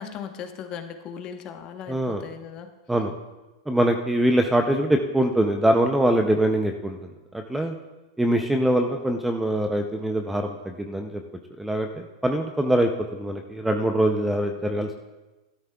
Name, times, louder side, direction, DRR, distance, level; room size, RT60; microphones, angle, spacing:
voice 1, 0.0-2.7, left 7 dB, 30° left, 6 dB, 1.0 m, -37 dB
voice 2, 1.9-2.2 2.9-3.1 3.7-7.0 7.3-7.8 8.2-11.2 11.6-14.9, right 1 dB, 5° right, 4 dB, 0.5 m, -23 dB
17.0 x 13.0 x 2.3 m, 1.1 s
supercardioid pair, 150°, 3 cm